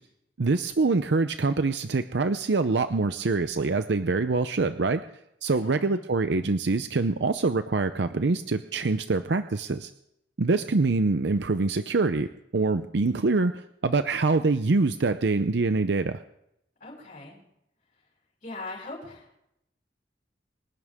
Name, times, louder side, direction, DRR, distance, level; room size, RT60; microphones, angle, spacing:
voice 1, 0.4-5.0 5.4-9.9 10.4-16.2, right 3 dB, 70° right, 10 dB, 0.6 m, -25 dB
voice 2, 5.5-6.0 16.8-17.4 18.4-19.3, left 2 dB, 50° left, -5 dB, 6.9 m, -40 dB
26.0 x 11.0 x 3.6 m, 0.80 s
head